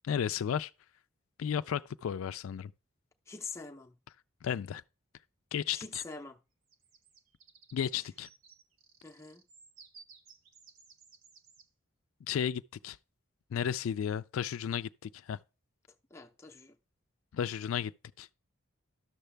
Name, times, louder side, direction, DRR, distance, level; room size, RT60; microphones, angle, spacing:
voice 1, 0.0-0.7 1.4-2.7 4.4-4.8 5.5-6.0 7.7-8.3 12.2-13.0 13.5-15.4 17.3-17.9 18.2-18.3, left 8 dB, 80° left, 0.3 m, -33 dB
voice 2, 3.3-4.0 5.7-6.4 9.0-9.4 16.1-16.8, left 4 dB, 15° left, 0.6 m, -44 dB
sound 1, 6.7-11.7, right 5 dB, 80° right, 1.2 m, -58 dB
11.0 x 6.6 x 3.3 m
head